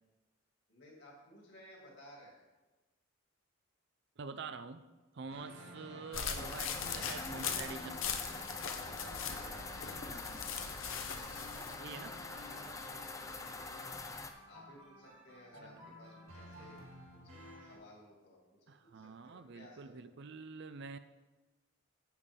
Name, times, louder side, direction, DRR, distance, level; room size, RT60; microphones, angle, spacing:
voice 1, 0.7-2.4 5.6-6.4 8.7-10.5 12.8-14.0 14.5-16.8 17.2-20.2, left 1 dB, 55° left, -2 dB, 2.7 m, -58 dB
voice 2, 4.2-4.9 5.1-8.1 11.8-12.2 15.6-15.7 18.7-21.0, right 4 dB, 55° right, 11 dB, 0.5 m, -46 dB
sound 1, 5.3-17.8, equal, 80° right, 2.6 m, -53 dB
sound 2, 6.1-11.8, left 7 dB, 70° left, 0.8 m, -41 dB
sound 3, 6.4-14.3, left 3 dB, 15° left, 0.4 m, -45 dB
9.1 x 8.4 x 3.7 m, 1.2 s
head